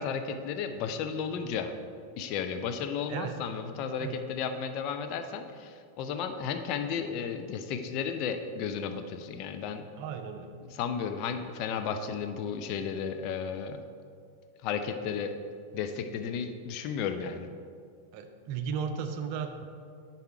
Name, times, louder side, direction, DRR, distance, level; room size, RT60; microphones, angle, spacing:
voice 1, 0.0-1.7 2.2-9.9 10.6-13.8 14.6-15.4 15.7-17.5, left 6 dB, 40° left, 7 dB, 0.6 m, -33 dB
voice 2, 10.0-10.5 18.1-19.6, right 6 dB, 45° right, 7 dB, 0.6 m, -35 dB
10.5 x 4.2 x 4.7 m, 2.2 s
figure-of-eight pair, 90°, 0 cm